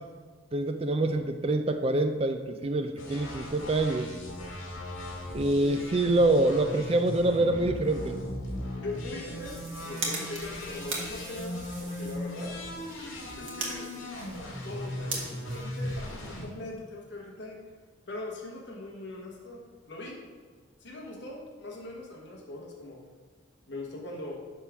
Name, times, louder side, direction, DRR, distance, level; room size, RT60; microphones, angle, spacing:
voice 1, 0.5-4.1 5.3-8.2, right 2 dB, 30° right, 7 dB, 0.4 m, -26 dB
sound 1, 3.0-16.5, left 1 dB, 80° left, 2.1 m, -38 dB
voice 2, 8.8-9.5 9.8-12.5 13.4-13.9 14.6-17.6 18.1-19.6 19.9-20.2 20.8-23.0 23.7-24.4, left 2 dB, 55° left, -2 dB, 1.3 m, -41 dB
sound 2, 9.2-16.5, right 3 dB, 75° right, 1.7 m, -40 dB
9.8 x 3.6 x 5.9 m, 1.5 s
head